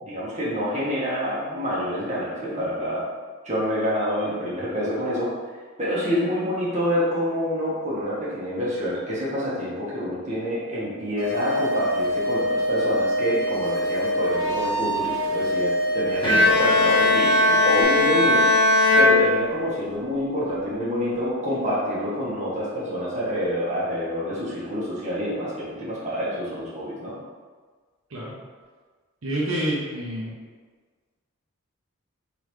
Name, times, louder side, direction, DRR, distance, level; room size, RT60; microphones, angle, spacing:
voice 1, 0.0-3.0 3.4-5.3 5.8-18.4 19.0-27.1, equal, 30° right, -8 dB, 1.3 m, -27 dB
sound 1, 11.2-17.8, equal, 60° left, 0.9 m, -25 dB
Bowed string instrument, 16.2-20.0, left 2 dB, 20° left, 0.6 m, -19 dB
voice 2, 29.2-30.3, right 1 dB, 70° right, -5 dB, 0.8 m, -27 dB
4.0 x 3.8 x 3.2 m, 1.5 s
head